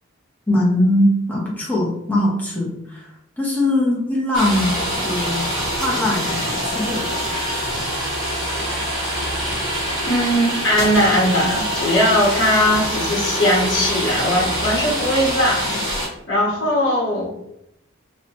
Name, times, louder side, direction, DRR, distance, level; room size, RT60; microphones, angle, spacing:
voice 1, 0.5-5.4 5.8-7.4, left 1 dB, 10° left, -5 dB, 0.6 m, -21 dB
sound 1, 4.3-16.1, equal, 20° right, 1.0 m, -24 dB
voice 2, 10.0-17.3, equal, 55° left, -5 dB, 0.9 m, -19 dB
2.7 x 2.1 x 2.8 m, 0.79 s
head